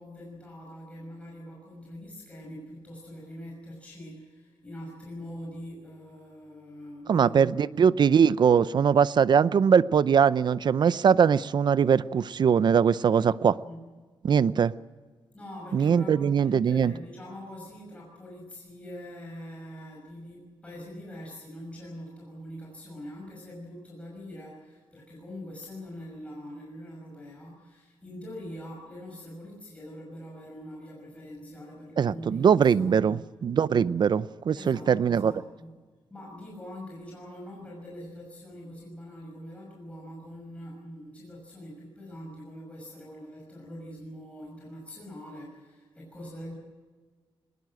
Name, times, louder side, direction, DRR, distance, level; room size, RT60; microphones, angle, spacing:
voice 1, 0.0-7.6 13.6-13.9 15.3-33.2 34.6-35.7 36.1-46.5, equal, 15° left, 6.1 m, -43 dB
voice 2, 7.1-13.6 14.2-14.7 15.7-16.9 32.0-35.3, right 7 dB, 50° right, 0.6 m, -21 dB
20.5 x 20.5 x 7.8 m
wide cardioid pair, 145°, 10 cm